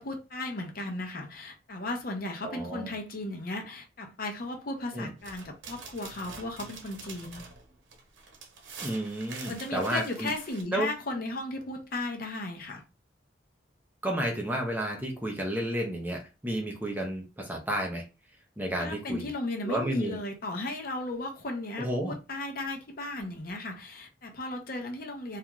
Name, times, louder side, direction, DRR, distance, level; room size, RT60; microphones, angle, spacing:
voice 1, 0.0-7.4 9.4-12.8 18.8-25.4, left 2 dB, 50° left, 0.6 m, -35 dB
voice 2, 2.4-2.9 4.9-5.1 8.8-10.3 10.7-10.9 14.0-18.0 18.6-19.3 19.6-20.2 21.8-22.1, right 1 dB, 10° right, 0.5 m, -31 dB
sound 1, 5.2-10.6, right 4 dB, 85° right, 0.7 m, -46 dB
2.4 x 2.3 x 2.9 m
head